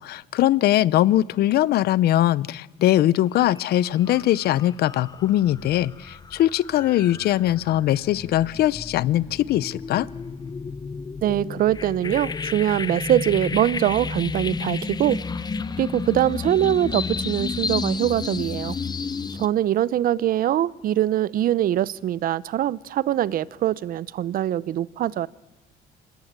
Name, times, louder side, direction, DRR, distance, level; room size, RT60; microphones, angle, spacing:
voice 1, 0.0-10.1, left 13 dB, 70° left, 19 dB, 0.8 m, -21 dB
sound 1, 3.4-3.6 4.0-19.5, left 5 dB, 25° left, 0.8 m, -32 dB
voice 2, 11.2-15.2 15.8-18.8 19.4-25.3, right 12 dB, 60° right, 20 dB, 0.7 m, -23 dB
26.0 x 20.0 x 8.9 m, 1.2 s
cardioid pair, 110°, 17 cm